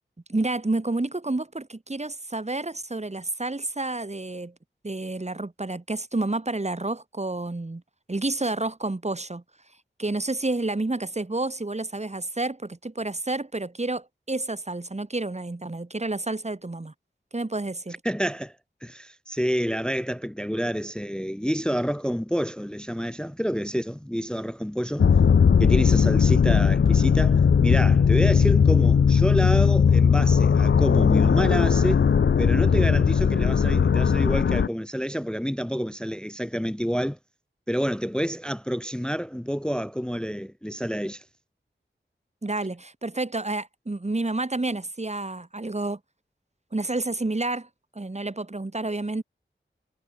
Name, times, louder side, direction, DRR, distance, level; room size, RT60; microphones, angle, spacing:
voice 1, 0.3-4.5 4.8-7.8 8.1-9.4 10.0-16.9 17.3-18.0 42.4-46.0 46.7-47.7 47.9-49.2, right 2 dB, 35° right, 2.8 m, -29 dB
voice 2, 18.0-18.5 18.8-25.0 25.6-32.1 32.4-37.2 37.7-41.2, equal, 5° left, 0.5 m, -28 dB
sound 1, 25.0-34.7, left 6 dB, 65° left, 0.6 m, -19 dB
wide cardioid pair, 70°, 20 cm